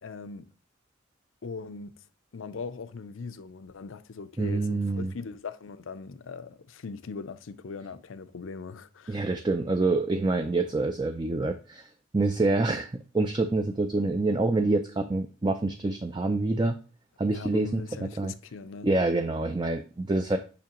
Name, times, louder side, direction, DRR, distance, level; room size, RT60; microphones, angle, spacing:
voice 1, 0.0-0.5 1.4-1.9 2.3-9.2 17.3-18.9, left 4 dB, 80° left, 0.5 m, -40 dB
voice 2, 4.4-5.1 9.1-12.9 13.1-16.8 17.2-18.3 18.8-20.4, right 2 dB, 20° right, 0.4 m, -26 dB
7.0 x 5.8 x 3.0 m
head